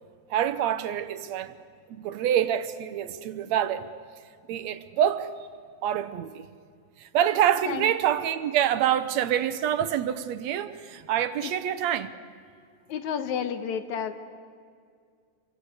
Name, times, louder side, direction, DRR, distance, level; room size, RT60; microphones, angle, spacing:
voice 1, 0.3-1.5 1.9-3.9 4.5-5.3 5.8-6.5 7.0-12.1, right 10 dB, 70° right, 2.0 m, -26 dB
voice 2, 12.9-14.2, left 7 dB, 80° left, 2.5 m, -31 dB
28.0 x 23.5 x 8.1 m
omnidirectional pair, 3.3 m